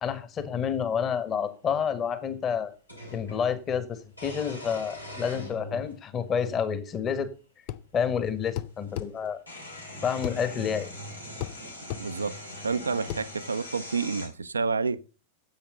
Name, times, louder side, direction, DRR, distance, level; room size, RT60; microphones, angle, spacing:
voice 1, 0.0-2.7 3.1-7.3 7.9-9.4 10.0-10.9, left 7 dB, 30° left, 1.5 m, -29 dB
sound 1, 1.2-1.3 2.9-3.4 4.1-6.0 6.9-7.0 8.5-8.6 8.9-14.3, left 1 dB, 85° left, 3.4 m, -41 dB
sound 2, 7.7-7.9 8.6-9.1 10.2-10.4 11.4-11.6 11.9-12.1 13.1-13.3, left 13 dB, 45° left, 0.5 m, -33 dB
voice 2, 12.0-15.0, right 4 dB, 75° right, 0.6 m, -29 dB
10.5 x 8.0 x 6.6 m
figure-of-eight pair, 90°, 0 cm